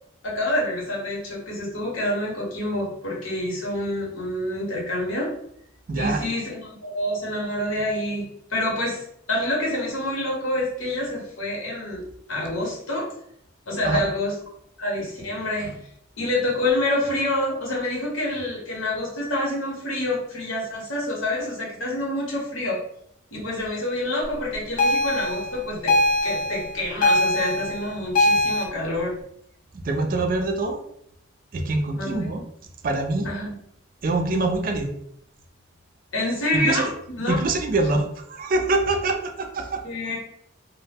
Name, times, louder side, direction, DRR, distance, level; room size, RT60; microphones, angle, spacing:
voice 1, 0.2-5.3 6.0-12.0 12.3-13.1 13.7-14.3 14.8-15.8 16.2-22.8 23.3-26.0 26.2-29.2 32.0-32.3 33.2-33.6 36.1-36.9 37.2-37.4 39.8-40.2, left 1 dB, 90° left, -3 dB, 0.9 m, -27 dB
voice 2, 5.9-6.2 13.8-14.0 29.8-30.8 31.5-32.4 32.8-33.3 34.0-34.9 36.5-36.9 37.3-39.8, right 2 dB, 45° right, 4 dB, 0.3 m, -24 dB
sound 1, 24.8-28.7, left 1 dB, 40° left, 0.4 m, -22 dB
2.0 x 2.0 x 3.3 m, 0.72 s
head